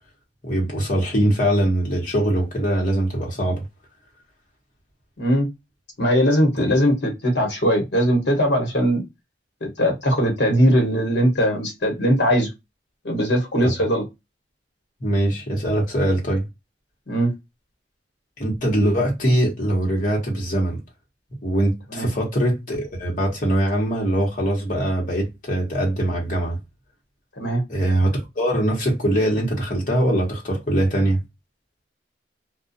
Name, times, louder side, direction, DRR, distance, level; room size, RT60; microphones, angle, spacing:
voice 1, 0.4-3.6 6.6-6.7 13.6-13.7 15.0-16.4 18.4-20.8 21.4-26.6 27.7-31.2, right 1 dB, 45° left, 1.0 m, -22 dB
voice 2, 5.2-5.5 6.0-9.0 9.6-12.5 13.0-14.0 17.1-17.3 21.9-22.1 27.4-27.6, equal, 75° left, 1.0 m, -20 dB
2.4 x 2.2 x 2.5 m
head